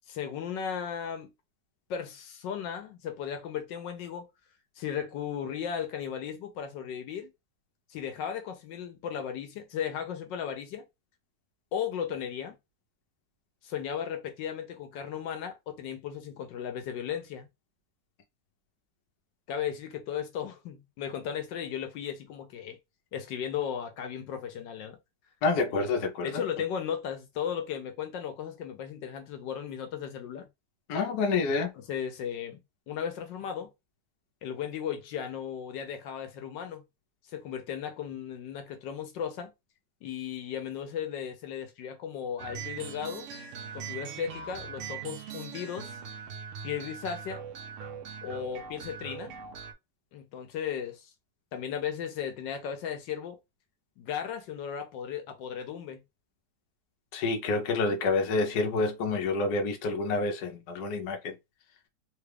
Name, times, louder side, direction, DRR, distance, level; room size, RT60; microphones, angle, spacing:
voice 1, 0.1-1.3 1.9-4.3 4.8-7.3 7.9-10.8 11.7-12.6 13.6-17.5 19.5-22.8 23.1-25.0 25.6-25.8 26.2-30.5 31.7-32.6 32.9-33.7 34.4-36.8 37.3-39.5 40.0-43.3 43.7-46.0 46.6-47.4 48.2-49.3 50.1-51.1 51.5-53.4 54.0-56.0, left 8 dB, 80° left, 1.3 m, -36 dB
voice 2, 25.4-26.3 30.9-31.7 57.1-61.3, left 3 dB, 65° left, 1.2 m, -28 dB
sound 1, 42.4-49.7, right 7 dB, 65° right, 0.8 m, -41 dB
3.6 x 2.3 x 3.2 m
omnidirectional pair, 1.9 m